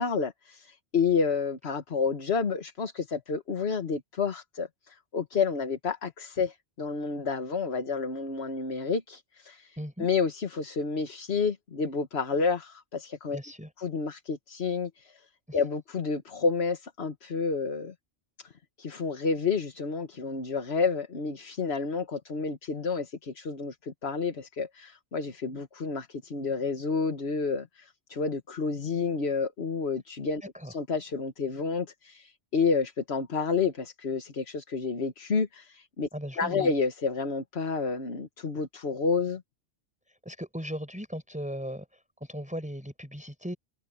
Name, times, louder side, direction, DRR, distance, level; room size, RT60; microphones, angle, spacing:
voice 1, 0.0-13.4 13.8-17.9 18.4-18.5 18.8-36.1 36.4-39.4, left 5 dB, 60° left, 1.7 m, -30 dB
voice 2, 9.8-10.1 13.3-13.7 15.5-15.6 30.5-30.7 36.1-36.7 40.1-43.6, equal, 5° right, 6.7 m, -38 dB
omnidirectional pair, 1.2 m